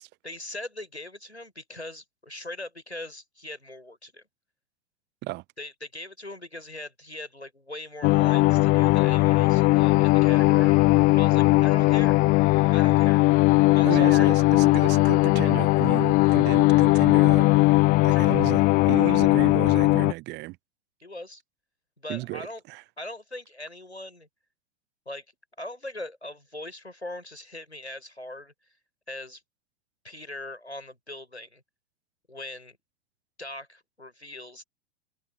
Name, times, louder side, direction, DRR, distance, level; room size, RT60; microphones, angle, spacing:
voice 1, 0.2-4.2 5.6-12.2 12.7-13.2 13.7-14.3 18.1-18.3 21.0-21.4 22.0-22.6 23.0-24.3 25.0-25.2 25.6-28.5 29.1-29.4 30.0-31.6 32.3-32.8 33.4-34.6, left 1 dB, 90° left, 5.1 m, -40 dB
sound 1, 8.0-20.1, left 23 dB, 25° left, 0.5 m, -19 dB
voice 2, 13.8-17.5 18.0-20.6 22.1-22.8, right 21 dB, 35° right, 1.2 m, -33 dB
open air
figure-of-eight pair, 95°, 32 cm